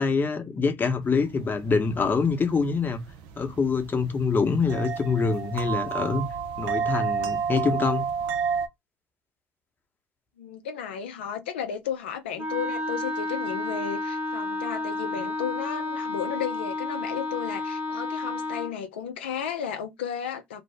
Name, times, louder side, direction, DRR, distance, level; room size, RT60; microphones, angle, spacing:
voice 1, 0.0-3.0 3.4-6.2 6.6-8.1, left 4 dB, 35° left, 0.8 m, -25 dB
sound 1, 1.0-8.7, right 6 dB, 80° right, 0.4 m, -31 dB
voice 2, 10.4-20.6, left 8 dB, 90° left, 0.5 m, -34 dB
Wind instrument woodwind instrument, 12.4-18.8, left 2 dB, 30° right, 0.9 m, -31 dB
2.6 x 2.0 x 3.2 m
hypercardioid pair, 60°, 6 cm